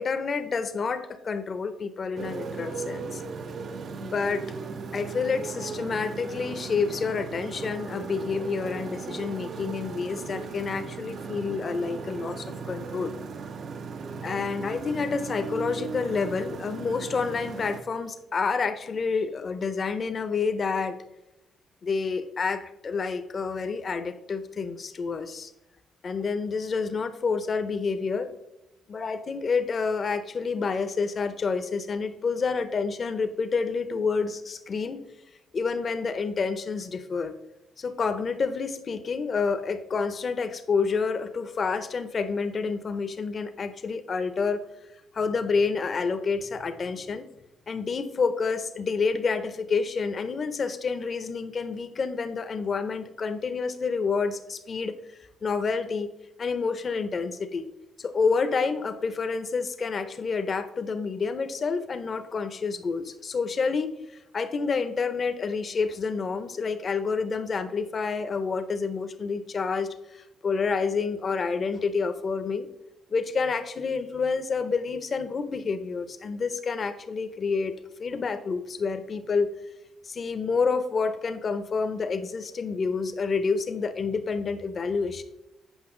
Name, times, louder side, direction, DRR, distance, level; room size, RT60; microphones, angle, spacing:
voice 1, 0.0-3.2 4.0-4.4 4.9-13.1 14.2-21.0 21.8-25.5 26.0-28.3 28.9-35.0 35.5-37.3 37.8-44.6 45.1-47.3 47.7-54.9 55.4-56.1 56.4-57.6 58.0-63.9 64.3-72.7 73.1-77.7 78.0-79.5 80.0-85.2, left 5 dB, 45° left, 10 dB, 0.6 m, -28 dB
Motorcycle, 2.2-17.8, right 5 dB, 55° right, 0.5 m, -37 dB
8.1 x 5.2 x 3.7 m, 0.90 s
cardioid pair, 90°, 0 cm